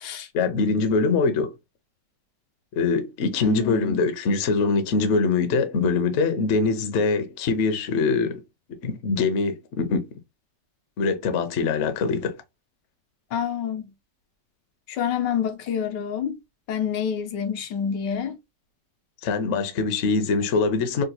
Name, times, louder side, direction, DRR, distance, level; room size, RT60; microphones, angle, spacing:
voice 1, 0.3-1.5 2.7-8.4 8.8-10.1 11.0-12.4 19.2-21.0, left 4 dB, 60° left, 0.7 m, -23 dB
voice 2, 3.4-4.1 13.3-13.9 14.9-16.4 16.7-18.4, left 8 dB, 90° left, 1.3 m, -27 dB
3.8 x 2.3 x 2.7 m
omnidirectional pair, 1.9 m